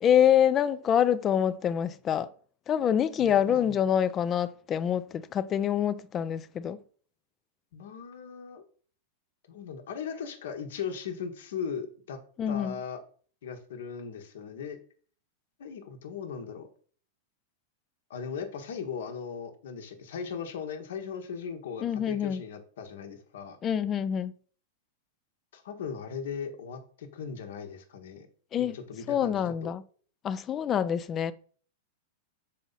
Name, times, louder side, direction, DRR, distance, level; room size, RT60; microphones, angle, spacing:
voice 1, 0.0-2.3 2.7-6.8 12.4-12.8 21.8-22.4 23.6-24.3 28.5-28.8 29.1-29.8 30.2-31.3, left 9 dB, 30° left, 0.4 m, -26 dB
voice 2, 3.2-3.7 7.7-8.6 9.5-12.2 12.5-13.0 13.4-14.8 15.6-16.7 18.1-23.6 25.5-28.3 28.6-29.7, left 6 dB, 75° left, 1.2 m, -38 dB
6.3 x 3.9 x 4.1 m
hypercardioid pair, 110°, 0 cm